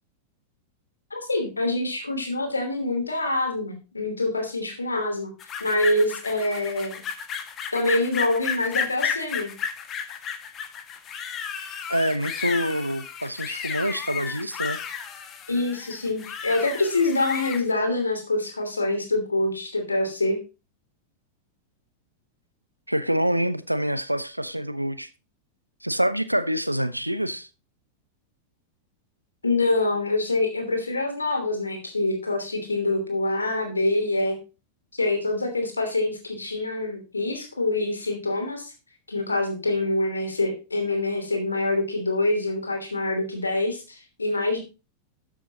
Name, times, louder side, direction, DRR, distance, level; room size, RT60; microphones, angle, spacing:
voice 1, 1.1-5.3 5.6-7.0 7.7-9.5 15.5-20.4 29.4-34.4 34.9-38.7 39.1-44.6, left 2 dB, 80° left, 3.0 m, -25 dB
sound 1, 5.4-17.6, left 7 dB, 30° left, 1.5 m, -33 dB
voice 2, 11.9-14.8 22.9-25.1 25.8-27.5, equal, 90° right, 0.8 m, -26 dB
13.0 x 7.4 x 2.9 m
figure-of-eight pair, 90°, 0 cm